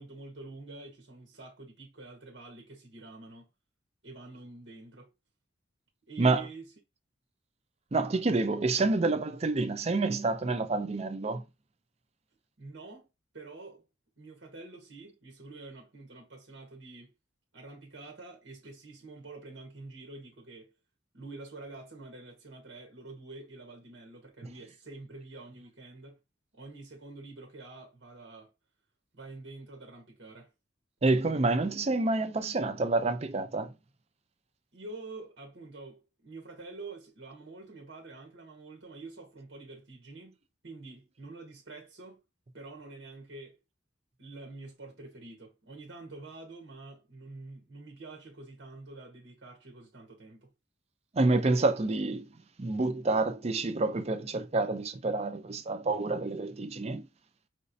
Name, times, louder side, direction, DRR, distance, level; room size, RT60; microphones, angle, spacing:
voice 1, 0.0-3.5 4.0-5.1 6.1-6.7 12.6-13.1 13.3-13.8 14.2-17.1 17.5-20.7 21.1-26.2 26.5-28.5 29.1-30.5 34.7-40.4 40.6-42.2 42.5-43.6 44.2-50.5, right 3 dB, 80° right, 1.2 m, -47 dB
voice 2, 7.9-11.4 31.0-33.7 51.1-52.3 52.6-57.1, right 3 dB, 35° right, 0.5 m, -28 dB
5.3 x 3.0 x 2.7 m
head